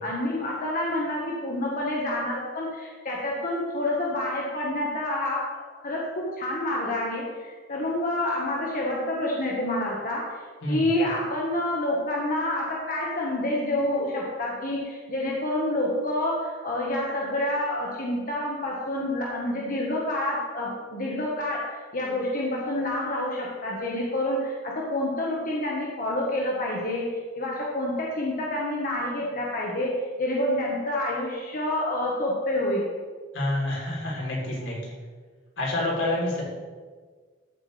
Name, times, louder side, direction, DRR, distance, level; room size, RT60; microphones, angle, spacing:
voice 1, 0.0-5.5 5.8-10.4 10.7-32.9, left 1 dB, 45° left, -3 dB, 1.6 m, -28 dB
voice 2, 33.3-34.8 35.6-36.4, left 1 dB, 80° left, -4 dB, 3.7 m, -27 dB
13.5 x 8.5 x 3.5 m, 1.5 s
head